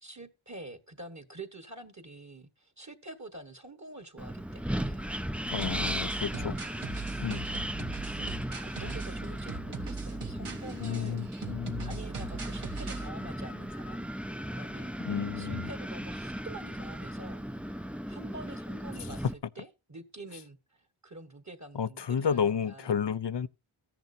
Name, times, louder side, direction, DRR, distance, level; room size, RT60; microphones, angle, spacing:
voice 1, 0.0-6.8 7.3-7.5 8.0-11.2 11.8-14.1 14.6-14.9 15.3-17.5 18.1-22.9, right 2 dB, 35° right, 1.5 m, -47 dB
Wind, 4.2-19.3, equal, 5° right, 0.5 m, -37 dB
voice 2, 5.5-6.6 7.2-7.4 10.8-11.9 15.0-15.7 21.7-23.5, left 7 dB, 55° left, 0.6 m, -31 dB
sound 1, 5.6-13.1, right 4 dB, 85° right, 1.6 m, -40 dB
13.5 x 10.5 x 2.7 m
wide cardioid pair, 45°, 50 cm